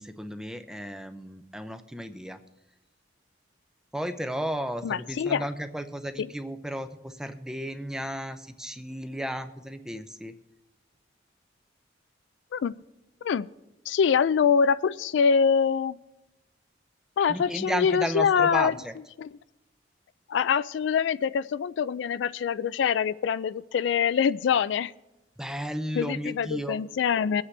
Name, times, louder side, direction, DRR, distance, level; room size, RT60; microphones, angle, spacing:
voice 1, 0.0-2.4 3.9-10.3 17.3-18.9 25.4-26.8, equal, 5° right, 9 dB, 0.6 m, -34 dB
voice 2, 4.8-5.4 6.2-6.3 12.5-12.7 13.2-13.5 13.9-16.0 17.2-18.7 19.2-19.3 20.3-24.9 26.0-27.4, left 6 dB, 75° left, 17 dB, 0.3 m, -24 dB
23.5 x 8.5 x 3.3 m, 0.97 s
head